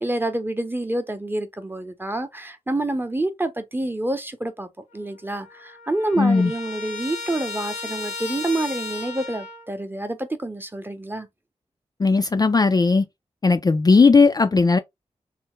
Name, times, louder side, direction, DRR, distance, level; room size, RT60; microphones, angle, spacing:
voice 1, 0.0-11.3, right 1 dB, 15° right, 0.7 m, -28 dB
Trumpet, 4.9-5.0 5.3-9.7, left 4 dB, 85° left, 1.1 m, -35 dB
voice 2, 6.2-6.5 12.0-13.0 13.4-14.8, left 4 dB, 30° left, 0.3 m, -17 dB
3.3 x 2.0 x 3.0 m
cardioid pair, 55°, 13 cm